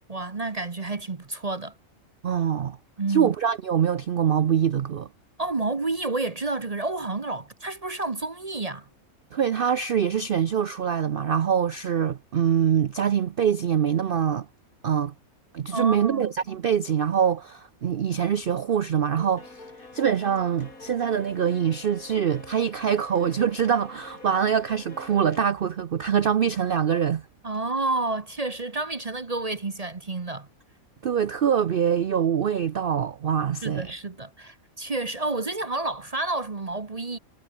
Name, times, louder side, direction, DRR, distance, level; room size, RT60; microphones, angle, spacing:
voice 1, 0.0-1.7 3.0-3.3 5.4-8.9 15.7-16.3 27.4-30.5 33.6-37.2, right 2 dB, 30° right, 1.0 m, -30 dB
voice 2, 2.2-2.8 3.1-5.1 9.3-14.5 14.8-15.1 15.5-19.6 19.9-27.2 31.0-33.9, right 8 dB, 50° right, 0.7 m, -24 dB
sound 1, 17.8-18.2 18.5-25.4, left 3 dB, 75° left, 4.3 m, -47 dB
omnidirectional pair, 1.5 m